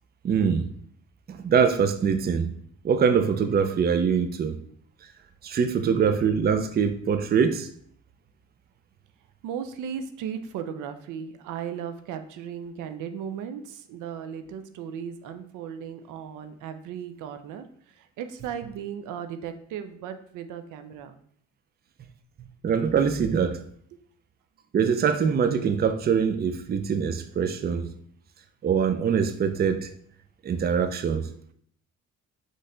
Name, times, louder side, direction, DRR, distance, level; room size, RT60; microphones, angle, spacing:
voice 1, 0.2-0.7 1.3-2.5 2.8-4.6 5.4-7.7 22.6-23.6 24.7-27.9 28.6-29.9 30.4-31.5, right 6 dB, 30° right, 0.4 m, -23 dB
voice 2, 9.4-17.6 18.0-21.2, right 8 dB, 85° right, 0.5 m, -36 dB
4.1 x 3.2 x 3.8 m
cardioid pair, 90°, 30 cm